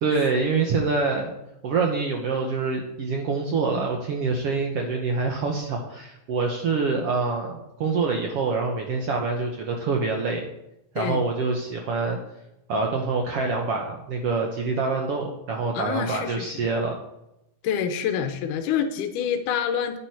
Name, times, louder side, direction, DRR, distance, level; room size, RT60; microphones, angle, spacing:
voice 1, 0.0-1.3 1.6-10.5 10.9-12.2 12.7-17.0, right 4 dB, 65° right, 2 dB, 1.6 m, -26 dB
voice 2, 15.7-16.5 17.6-20.0, left 8 dB, 90° left, 7 dB, 2.3 m, -27 dB
10.0 x 8.9 x 4.7 m, 0.88 s
omnidirectional pair, 3.6 m